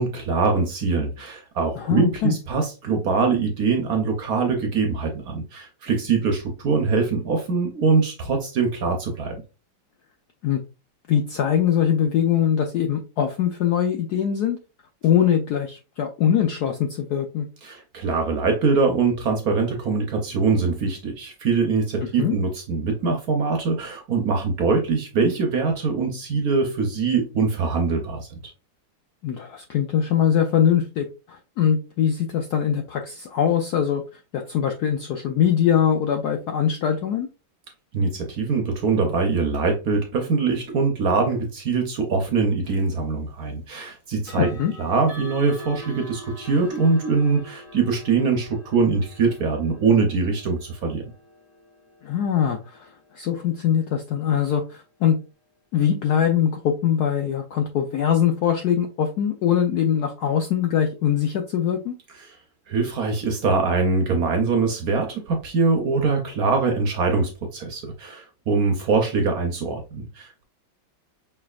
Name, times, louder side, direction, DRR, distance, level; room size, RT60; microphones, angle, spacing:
voice 1, 0.0-9.4 17.6-28.4 37.9-51.1 62.2-62.3 62.7-70.4, right 4 dB, 60° right, 1.1 m, -23 dB
voice 2, 1.8-2.3 10.4-10.6 11.1-14.6 15.0-17.5 22.2-22.4 29.2-37.3 44.4-44.7 52.0-55.2 55.7-61.9, left 9 dB, 70° left, 0.9 m, -22 dB
sound 1, 42.6-42.9 44.2-55.0, equal, 50° left, 1.4 m, -45 dB
5.4 x 3.4 x 2.3 m
omnidirectional pair, 2.2 m